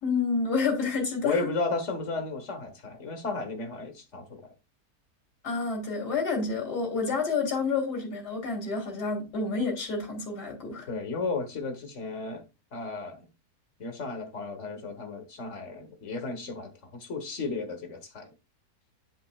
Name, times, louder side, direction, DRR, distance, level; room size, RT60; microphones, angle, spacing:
voice 1, 0.0-1.5 5.4-10.9, left 4 dB, 70° left, 3.6 m, -29 dB
voice 2, 1.2-4.4 10.9-12.4 12.7-13.3 13.8-18.3, left 3 dB, 45° left, 1.6 m, -34 dB
11.0 x 5.5 x 2.4 m
omnidirectional pair, 1.8 m